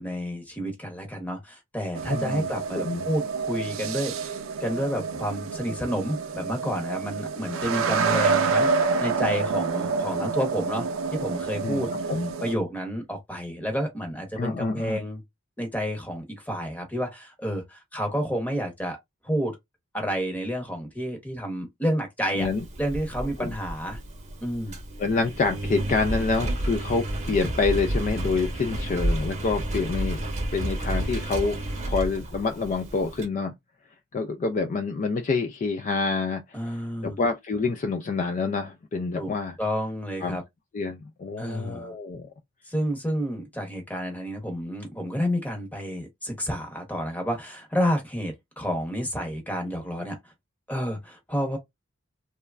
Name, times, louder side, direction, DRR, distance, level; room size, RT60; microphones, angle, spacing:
voice 1, 0.0-4.3 4.6-10.9 11.1-11.9 12.4-15.2 15.6-19.0 19.2-19.6 19.9-22.5 22.8-24.0 24.4-24.7 36.5-37.2 39.2-39.3 39.6-40.4 41.4-41.9 42.7-50.2 50.7-51.6, equal, 10° left, 0.9 m, -30 dB
sound 1, 2.0-12.5, right 4 dB, 70° right, 0.4 m, -28 dB
voice 2, 2.1-2.5 2.7-3.1 11.6-12.3 14.4-15.0 22.3-22.7 23.4-23.5 25.0-30.2 30.5-31.6 31.9-33.5 34.1-36.4 36.7-39.6 40.2-40.4 40.7-42.3, left 4 dB, 40° left, 0.3 m, -27 dB
Engine, 22.4-33.3, right 1 dB, 35° right, 0.8 m, -31 dB
3.1 x 2.2 x 2.3 m
head